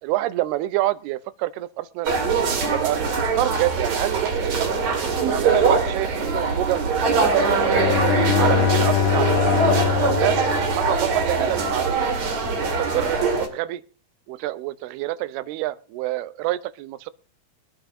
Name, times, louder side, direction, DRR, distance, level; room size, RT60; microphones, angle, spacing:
voice 1, 0.0-2.1 2.7-5.0 5.3-6.9 7.2-8.0 8.4-9.5 10.0-12.0 12.6-13.2 13.5-13.8 14.3-17.1, right 15 dB, 85° right, 16 dB, 2.6 m, -27 dB
sound 1, 2.0-13.5, right 4 dB, 50° right, 3.0 m, -22 dB
Bowed string instrument, 7.6-11.4, left 14 dB, 75° left, 2.3 m, -24 dB
23.5 x 9.0 x 2.6 m, 0.40 s
omnidirectional pair, 4.5 m